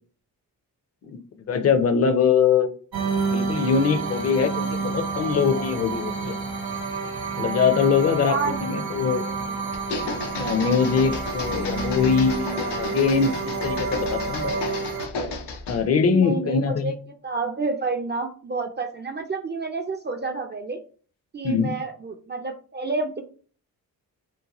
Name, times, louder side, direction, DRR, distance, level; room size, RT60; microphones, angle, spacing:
voice 1, 1.5-2.7 3.3-6.4 7.4-8.4 8.6-9.2 10.4-14.5 15.7-17.0 21.4-21.7, left 6 dB, 40° left, 9 dB, 0.5 m, -22 dB
sound 1, 2.9-15.1, right 4 dB, 65° right, 0.9 m, -29 dB
voice 2, 8.3-8.9 9.2-9.6 10.1-10.2 16.1-16.9 17.2-20.8 21.3-23.2, right 4 dB, 30° right, 5 dB, 0.4 m, -29 dB
sound 2, 9.7-15.9, left 3 dB, 85° left, 0.6 m, -33 dB
2.7 x 2.2 x 2.9 m, 0.42 s
cardioid pair, 50°, 40 cm